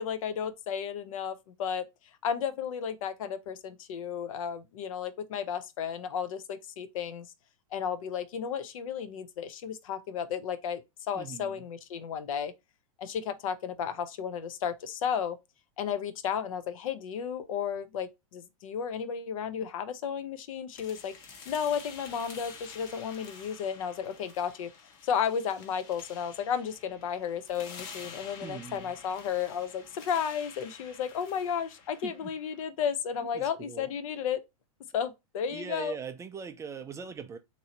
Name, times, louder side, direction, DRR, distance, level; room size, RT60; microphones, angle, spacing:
voice 1, 0.0-1.8 2.2-7.3 7.7-12.5 13.0-15.4 15.8-24.7 25.0-34.4 34.9-36.0, left 7 dB, 65° left, 0.6 m, -33 dB
voice 2, 11.1-11.6 28.4-28.9 32.0-32.3 33.3-33.9 35.5-37.4, right 6 dB, 15° right, 0.4 m, -41 dB
sound 1, 20.7-32.7, left 5 dB, 45° left, 1.2 m, -49 dB
3.0 x 2.7 x 3.8 m
hypercardioid pair, 115°, 18 cm